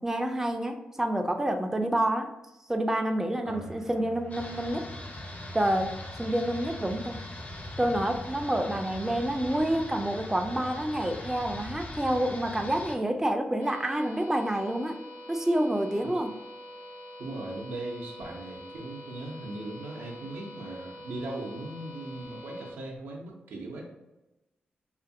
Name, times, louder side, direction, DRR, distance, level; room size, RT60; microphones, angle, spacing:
voice 1, 0.0-2.3 2.7-4.9 5.5-7.2 7.8-15.0 15.3-16.3, right 1 dB, 10° right, 5 dB, 0.3 m, -28 dB
voice 2, 3.4-3.8 16.0-16.2 17.2-23.9, right 2 dB, 80° right, -1 dB, 0.6 m, -39 dB
sound 1, 3.5-8.8, right 2 dB, 70° left, 1.0 m, -47 dB
sound 2, 4.3-13.0, left 2 dB, 40° left, 0.5 m, -41 dB
sound 3, 13.6-22.7, equal, 85° left, 0.6 m, -45 dB
2.5 x 2.5 x 2.6 m, 0.98 s
supercardioid pair, 45°, 4 cm